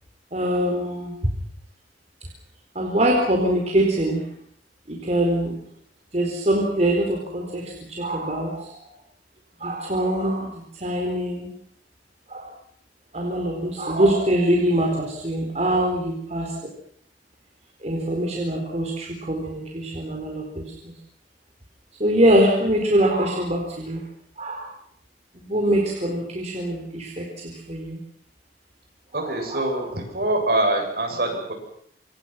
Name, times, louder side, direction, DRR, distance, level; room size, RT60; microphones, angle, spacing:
voice 1, 0.3-1.3 2.7-4.3 4.9-5.5 6.1-8.8 9.6-11.5 12.3-12.5 13.1-16.7 17.8-21.0 22.0-24.1 24.4-24.7 25.3-28.0 29.1-29.7, right 1 dB, 40° right, 0 dB, 4.4 m, -23 dB
voice 2, 29.1-31.5, right 1 dB, 60° right, 2 dB, 7.9 m, -24 dB
27.5 x 25.0 x 6.1 m, 0.64 s
head